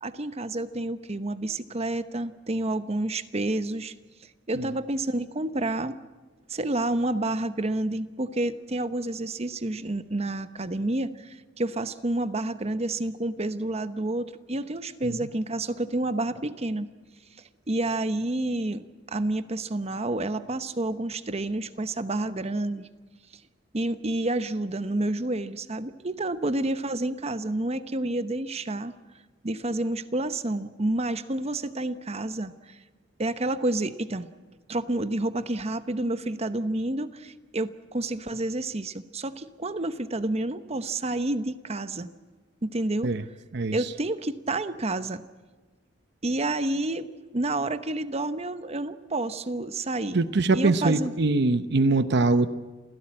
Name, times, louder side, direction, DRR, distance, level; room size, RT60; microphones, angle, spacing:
voice 1, 0.0-3.9 4.5-6.0 6.5-16.9 17.7-22.9 23.7-28.9 29.4-32.7 33.2-34.3 34.7-42.1 42.6-43.1 43.7-45.2 46.2-47.1 47.3-50.3 50.5-51.1, right 2 dB, 35° right, 12 dB, 0.9 m, -29 dB
voice 2, 50.1-52.5, right 3 dB, 60° right, 12 dB, 0.7 m, -23 dB
27.5 x 16.5 x 8.8 m, 1.3 s
head